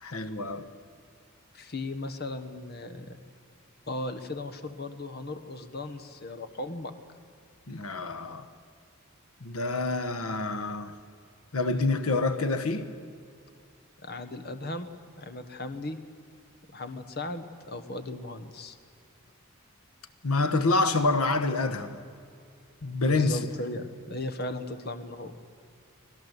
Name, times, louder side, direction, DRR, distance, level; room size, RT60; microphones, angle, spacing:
voice 1, 0.0-0.7 7.7-8.5 9.4-10.9 11.5-12.9 20.2-22.0 22.8-23.4, left 3 dB, 85° left, 1.2 m, -27 dB
voice 2, 1.5-3.2 3.9-6.9 14.0-14.9 15.2-16.0 16.7-18.8 23.1-25.3, left 2 dB, 45° left, 1.3 m, -37 dB
24.5 x 18.0 x 8.1 m
head